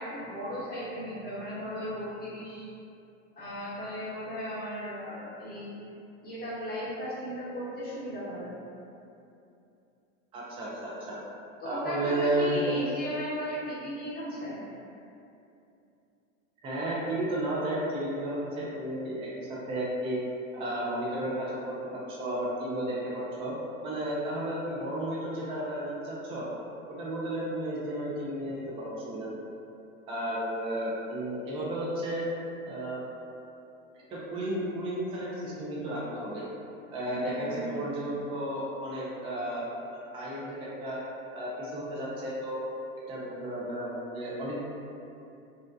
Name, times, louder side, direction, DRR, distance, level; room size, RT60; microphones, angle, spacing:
voice 1, 0.0-2.7 3.3-5.7 6.2-8.5 11.6-14.6 37.0-37.9, equal, 25° left, -10 dB, 0.9 m, -36 dB
voice 2, 10.3-11.2 11.6-12.8 16.6-20.2 20.5-23.5 23.8-26.5 26.9-29.4 30.1-32.2 32.6-33.0 34.1-36.4 36.9-39.6 39.9-41.0 41.3-42.6 43.1-44.6, right 1 dB, 15° right, -6 dB, 0.3 m, -33 dB
2.4 x 2.0 x 2.5 m, 2.7 s
hypercardioid pair, 105°, 39 cm